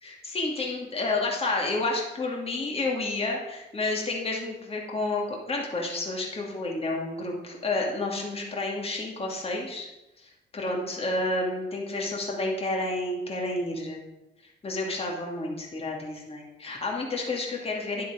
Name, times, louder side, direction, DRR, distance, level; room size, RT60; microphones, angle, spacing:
voice 1, 0.0-9.9 10.2-14.0 14.6-18.1, left 2 dB, 30° left, -1 dB, 2.6 m, -30 dB
10.5 x 7.5 x 5.2 m, 0.95 s
cardioid pair, 90°, 20 cm